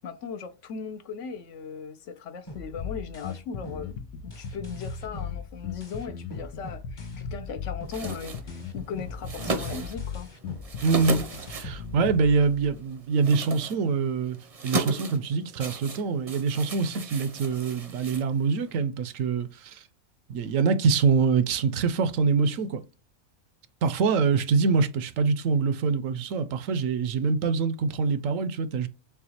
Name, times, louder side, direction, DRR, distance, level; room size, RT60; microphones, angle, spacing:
voice 1, 0.0-10.3, left 6 dB, 65° left, 0.9 m, -38 dB
sound 1, 2.5-7.5 7.8-12.8, left 2 dB, 25° left, 0.7 m, -45 dB
Bass guitar, 2.8-12.4, left 6 dB, 90° left, 1.2 m, -37 dB
sound 2, 7.8-18.8, right 2 dB, 35° right, 0.6 m, -36 dB
voice 2, 10.8-11.2 11.5-14.4 14.6-19.8 20.3-22.8 23.8-28.9, right 5 dB, 75° right, 1.0 m, -25 dB
6.9 x 2.3 x 2.8 m
omnidirectional pair, 1.4 m